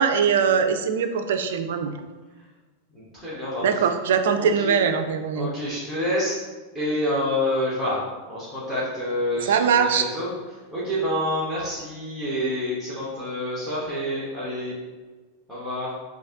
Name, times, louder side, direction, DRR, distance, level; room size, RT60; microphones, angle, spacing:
voice 1, 0.0-1.9 3.6-5.5 9.4-10.0, right 6 dB, 60° right, 8 dB, 0.4 m, -21 dB
voice 2, 2.9-3.9 4.3-4.8 5.3-6.4 6.7-14.7 15.5-15.9, left 1 dB, 5° left, -9 dB, 1.3 m, -28 dB
3.9 x 2.6 x 3.9 m, 1.3 s
figure-of-eight pair, 90°, 0 cm